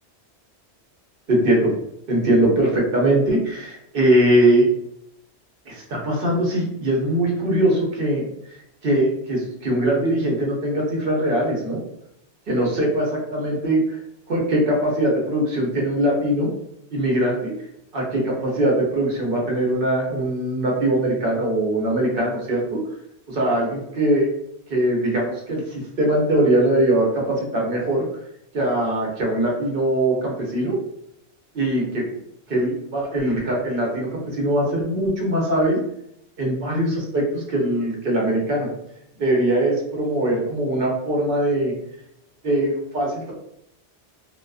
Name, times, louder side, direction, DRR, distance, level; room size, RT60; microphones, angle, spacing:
voice 1, 1.3-1.7 2.1-4.7 5.7-8.2 8.8-11.8 12.5-14.0 14.3-16.5 16.9-17.5 17.9-22.8 23.3-24.3 24.7-28.0 28.5-30.8 31.5-32.0 32.5-35.8 36.4-38.7 39.2-41.7 42.4-43.3, right 1 dB, 60° right, -2 dB, 0.8 m, -21 dB
2.3 x 2.3 x 2.3 m, 0.77 s
omnidirectional pair, 1.1 m